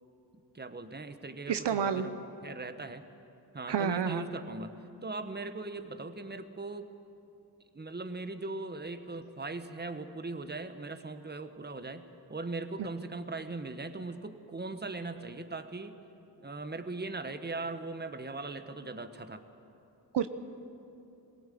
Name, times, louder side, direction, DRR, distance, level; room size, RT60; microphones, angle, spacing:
voice 1, 0.5-2.2 2.4-3.0 3.5-6.9 7.7-16.0 16.4-19.4, right 3 dB, 25° right, 9 dB, 1.3 m, -39 dB
voice 2, 1.5-2.1 3.7-4.3 20.1-20.3, right 8 dB, 75° right, 10 dB, 0.9 m, -29 dB
22.5 x 17.0 x 7.8 m, 2.8 s
cardioid pair, 60°, 42 cm